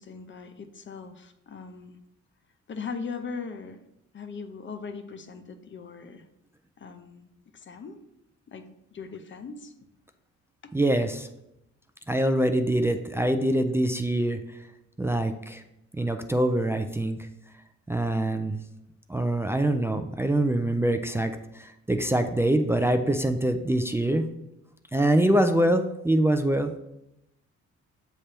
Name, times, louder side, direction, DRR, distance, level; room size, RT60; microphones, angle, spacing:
voice 1, 0.0-2.0 2.7-3.8 4.1-6.3 6.8-8.0 8.5-9.7, left 5 dB, 40° left, 8 dB, 0.7 m, -39 dB
voice 2, 10.7-11.3 12.1-14.4 15.0-15.6 15.9-17.3 17.9-18.6 19.1-24.3 24.9-26.8, right 1 dB, 10° right, 6 dB, 0.4 m, -24 dB
7.3 x 3.4 x 4.3 m, 0.85 s
cardioid pair, 90°, 30 cm